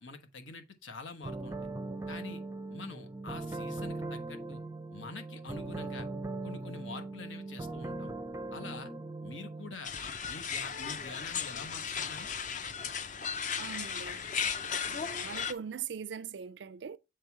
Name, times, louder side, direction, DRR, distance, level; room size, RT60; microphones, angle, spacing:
voice 1, 0.0-1.6 2.1-2.4 2.7-4.6 4.9-6.1 6.4-8.1 8.5-8.9 9.2-9.9 10.3-12.3, left 3 dB, 90° left, 1.1 m, -46 dB
sound 1, 1.2-9.7, right 2 dB, 15° right, 0.5 m, -40 dB
sound 2, 9.8-15.5, left 6 dB, 40° left, 0.5 m, -36 dB
voice 2, 13.6-14.2 14.9-17.0, right 7 dB, 70° right, 0.4 m, -41 dB
7.7 x 3.4 x 4.5 m
head